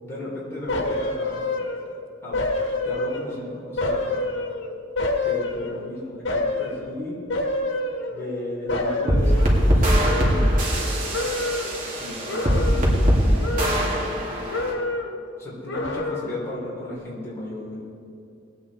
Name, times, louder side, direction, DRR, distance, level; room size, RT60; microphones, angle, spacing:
voice 1, 0.0-1.6 2.2-2.4 2.8-4.2 5.2-7.2 8.1-11.0 11.8-14.6 15.4-17.8, left 1 dB, 15° left, -8 dB, 3.4 m, -35 dB
sound 1, 0.7-2.0 2.3-3.4 3.8-5.9 6.2-6.8 7.3-8.4 8.7-10.8 11.1-11.8 12.3-13.1 13.4-14.2 14.5-15.2 15.7-16.5 16.8-17.0, left 2 dB, 90° left, 1.3 m, -28 dB
sound 2, 9.1-14.7, equal, 45° right, 2.3 m, -21 dB
20.0 x 8.6 x 4.2 m, 2.5 s
head